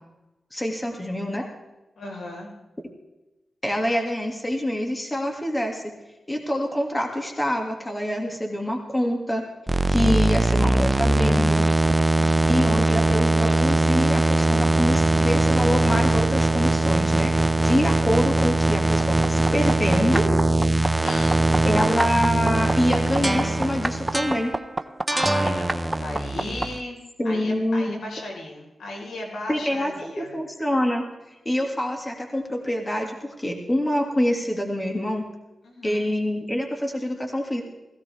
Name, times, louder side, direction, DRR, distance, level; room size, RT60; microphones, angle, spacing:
voice 1, 0.5-1.5 3.6-5.8 6.3-9.4 9.9-11.6 12.5-17.3 17.6-20.3 21.6-24.5 27.2-28.0 29.5-31.1 31.5-35.2 35.8-37.6, equal, 15° left, 2 dB, 2.3 m, -25 dB
voice 2, 2.0-2.5 21.0-21.5 25.1-30.4 35.6-36.1, left 1 dB, 90° left, -1 dB, 4.6 m, -36 dB
sound 1, 9.7-26.8, right 2 dB, 15° right, 0.7 m, -21 dB
17.0 x 16.0 x 3.5 m, 1.0 s
wide cardioid pair, 100°, 0 cm